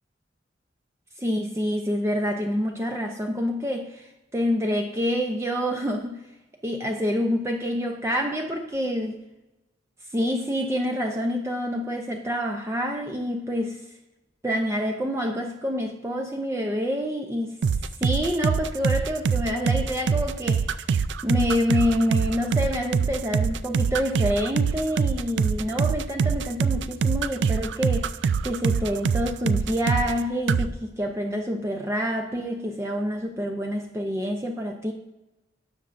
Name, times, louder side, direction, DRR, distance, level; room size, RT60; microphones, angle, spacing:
voice 1, 1.2-4.1 4.3-6.2 6.6-9.2 10.1-13.8 14.4-17.6 18.0-20.6 21.2-28.1 28.4-34.9, equal, 15° right, 2 dB, 0.6 m, -27 dB
sound 1, 17.6-30.2 30.5-30.7, right 6 dB, 65° right, 0.3 m, -24 dB
12.5 x 7.5 x 2.6 m, 0.96 s
head